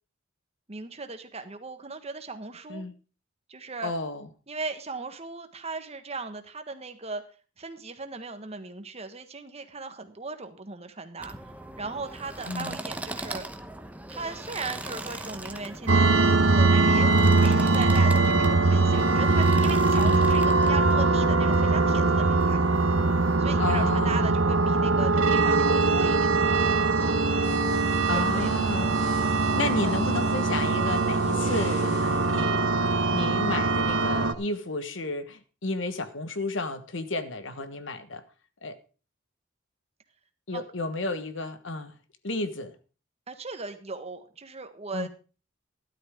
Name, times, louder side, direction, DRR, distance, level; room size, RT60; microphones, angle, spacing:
voice 1, 0.7-2.9 3.5-3.9 4.5-7.2 7.6-11.3 11.8-13.5 14.1-22.6 23.4-27.2 28.0-28.5 29.6-30.0 40.5-40.6 43.3-45.1, right 3 dB, 35° right, 8 dB, 1.5 m, -37 dB
voice 2, 3.8-4.3 12.5-12.8 20.0-20.3 23.6-24.3 28.1-29.0 29.5-32.8 33.1-38.2 38.6-38.8 40.5-41.9 42.2-42.7 44.9-45.1, left 2 dB, 70° left, 10 dB, 1.4 m, -32 dB
sound 1, 11.2-23.4, right 1 dB, 10° right, 0.9 m, -40 dB
sound 2, 15.9-34.3, right 3 dB, 85° right, 1.2 m, -22 dB
sound 3, 27.4-32.4, left 1 dB, 40° left, 3.4 m, -40 dB
13.0 x 12.0 x 3.6 m, 0.35 s
head